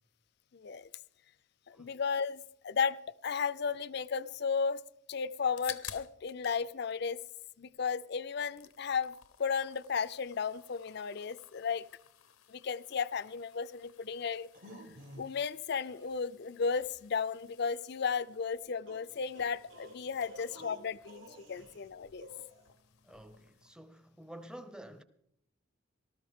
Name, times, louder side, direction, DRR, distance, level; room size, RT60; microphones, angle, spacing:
voice 1, 0.5-0.9 1.7-4.8 5.1-7.2 7.6-11.9 12.5-14.5 15.2-22.3, left 5 dB, 50° left, 0.4 m, -34 dB
sound 1, 5.3-6.6 6.9-7.9 8.2-23.7, left 10 dB, 90° left, 0.8 m, -54 dB
sound 2, 14.3-15.5 15.9-16.1 18.0-18.1 18.9-21.9 22.2-22.7, equal, 65° right, 1.9 m, -52 dB
voice 2, 23.0-25.0, right 1 dB, 5° right, 0.6 m, -50 dB
18.5 x 13.0 x 3.6 m
head